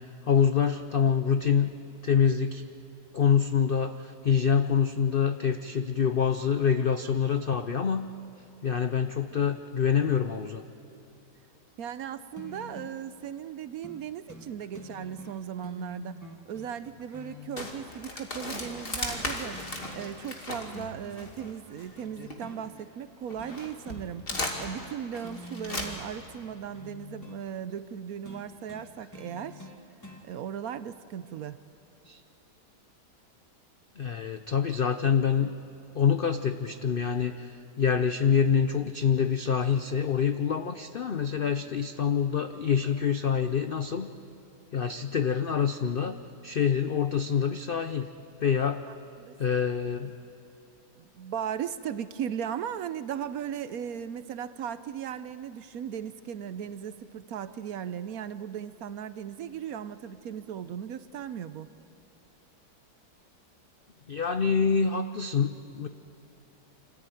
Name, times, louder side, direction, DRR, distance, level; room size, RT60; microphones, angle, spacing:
voice 1, 0.3-1.7 2.0-2.6 3.1-8.1 8.6-10.6 32.1-32.2 34.0-35.6 35.9-44.1 44.7-46.2 46.4-48.1 48.4-48.8 49.4-50.1 64.1-65.9, left 7 dB, 80° left, 9 dB, 0.5 m, -26 dB
voice 2, 11.8-16.2 16.5-19.6 19.9-24.2 24.6-29.7 30.2-31.6 48.9-49.6 51.0-61.7, right 8 dB, 65° right, 13 dB, 1.0 m, -37 dB
sound 1, 12.4-13.0 13.8-14.0 14.3-14.5 14.7-17.8 18.6-19.3 19.5-20.4 20.7-22.6 23.4-23.6 23.9-24.1 24.3-25.0 25.2-27.4 28.2-30.2 31.3-31.4, left 2 dB, 10° left, 1.7 m, -46 dB
sound 2, 17.6-22.8 23.2-26.3, left 2 dB, 30° left, 2.3 m, -37 dB
26.0 x 14.5 x 9.1 m, 2.8 s
omnidirectional pair, 1.8 m